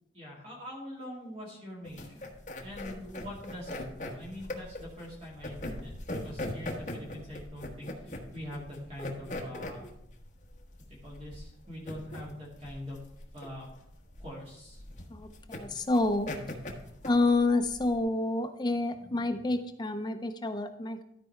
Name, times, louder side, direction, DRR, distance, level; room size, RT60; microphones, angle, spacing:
voice 1, 0.1-2.2 2.6-9.9 10.9-13.0 13.3-13.7 14.2-14.8, left 1 dB, 35° right, -5 dB, 2.3 m, -43 dB
sound 1, 1.8-18.0, left 1 dB, 40° left, 1.3 m, -40 dB
voice 2, 15.1-16.3 17.0-21.0, left 2 dB, 25° left, 8 dB, 0.4 m, -28 dB
13.0 x 4.7 x 4.4 m, 0.78 s
head